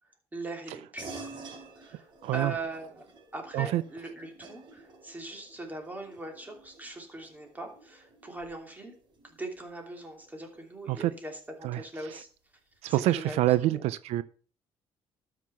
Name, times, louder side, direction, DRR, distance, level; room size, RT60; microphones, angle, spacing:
voice 1, 0.0-1.3 1.8-9.0 9.2-12.3 12.9-13.8, right 2 dB, 15° right, 2.9 m, -41 dB
sound 1, 1.0-10.8, right 3 dB, 45° right, 4.4 m, -50 dB
voice 2, 2.2-2.5 3.5-3.8 10.9-11.1 11.6-11.8 12.1-12.2 12.8-14.2, right 15 dB, 85° right, 0.5 m, -26 dB
12.5 x 5.9 x 5.7 m
cardioid pair, 115°, 11 cm